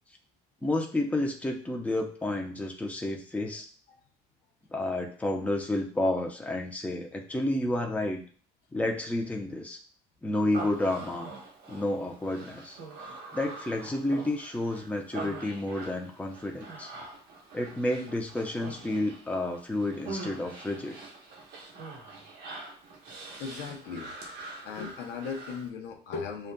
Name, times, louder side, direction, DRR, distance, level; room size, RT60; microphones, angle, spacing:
voice 1, 0.6-3.7 4.7-8.2 8.7-9.8 10.2-11.3 11.7-12.8 13.3-16.9 17.5-21.0, left 1 dB, 10° left, 1 dB, 0.7 m, -30 dB
Human voice, 10.5-25.7, right 3 dB, 80° right, 1.1 m, -44 dB
voice 2, 23.4-24.1 24.6-26.5, left 5 dB, 80° left, 3 dB, 0.8 m, -37 dB
6.7 x 2.4 x 2.2 m, 0.42 s
cardioid pair, 110°, 17 cm